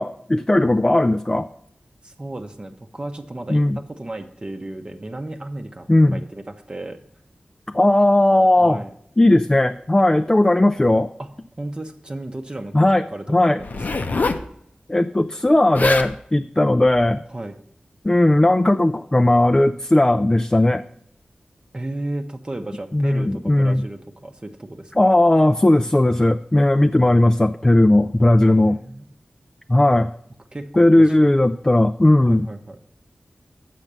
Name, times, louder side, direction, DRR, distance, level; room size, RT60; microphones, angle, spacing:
voice 1, 0.0-1.5 3.5-3.8 5.9-6.2 7.7-8.8 9.2-11.1 12.7-13.0 13.3-13.6 14.9-17.2 18.0-20.8 22.9-23.8 25.0-28.8 29.7-30.1 30.8-32.5, left 1 dB, 20° left, 7 dB, 0.3 m, -17 dB
voice 2, 2.0-7.0 8.6-8.9 11.2-11.3 11.6-14.1 17.3-17.6 21.7-25.0 28.5-29.0 30.5-31.1 32.2-32.8, right 1 dB, 30° right, 5 dB, 0.8 m, -34 dB
Zipper (clothing), 13.6-14.5 15.5-15.6 15.7-16.1 16.8-17.1, left 3 dB, 65° left, 0.7 m, -25 dB
7.3 x 5.8 x 6.6 m, 0.69 s
wide cardioid pair, 75°, 3 cm